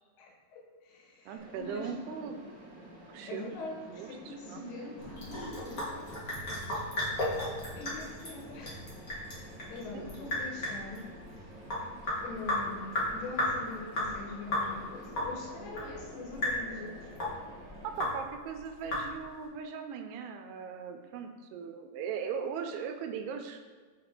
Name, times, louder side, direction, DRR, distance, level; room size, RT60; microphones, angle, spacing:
voice 1, 0.2-1.9 3.3-6.1 7.8-8.9 9.7-11.1 12.2-17.1, left 3 dB, 80° left, -1 dB, 3.1 m, -43 dB
voice 2, 1.3-2.4 3.1-3.5 3.9-4.7 9.9-10.4 17.8-23.6, right 7 dB, 90° right, 6 dB, 2.7 m, -39 dB
Mechanisms, 1.4-18.1, right 1 dB, 55° right, 0.9 m, -50 dB
Sink (filling or washing) / Drip, 5.0-19.4, left 1 dB, 50° left, 1.0 m, -35 dB
6.9 x 4.8 x 3.7 m, 1.5 s
omnidirectional pair, 4.5 m